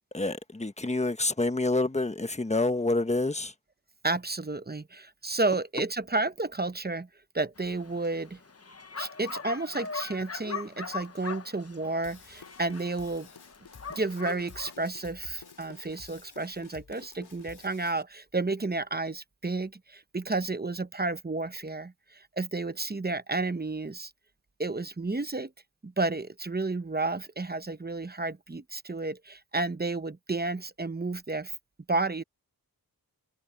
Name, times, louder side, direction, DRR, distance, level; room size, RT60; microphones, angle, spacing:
voice 1, 0.1-3.5, left 2 dB, 15° left, 1.2 m, -27 dB
voice 2, 4.0-7.1 7.3-8.4 9.0-13.3 13.9-24.1 24.6-25.5 25.8-31.5 31.9-32.2, right 3 dB, 25° right, 0.9 m, -31 dB
Bark, 7.6-14.7, left 5 dB, 40° left, 1.1 m, -41 dB
Drum kit / Drum, 12.0-18.0, left 5 dB, 80° left, 2.9 m, -51 dB
wide cardioid pair, 55°, 39 cm